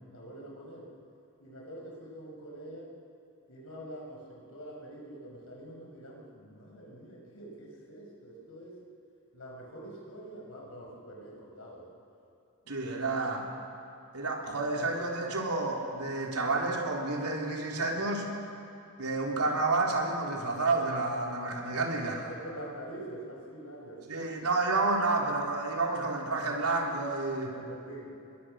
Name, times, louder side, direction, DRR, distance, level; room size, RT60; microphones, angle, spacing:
voice 1, 0.1-0.9 1.4-2.9 3.5-8.8 9.3-11.9 12.6-13.0 22.1-24.3 27.4-28.2, right 1 dB, 70° left, -1 dB, 5.8 m, -45 dB
voice 2, 12.7-13.4 14.1-18.3 19.0-22.3 24.1-27.5, right 3 dB, 85° right, 0 dB, 3.7 m, -30 dB
28.5 x 22.0 x 6.4 m, 2.5 s
head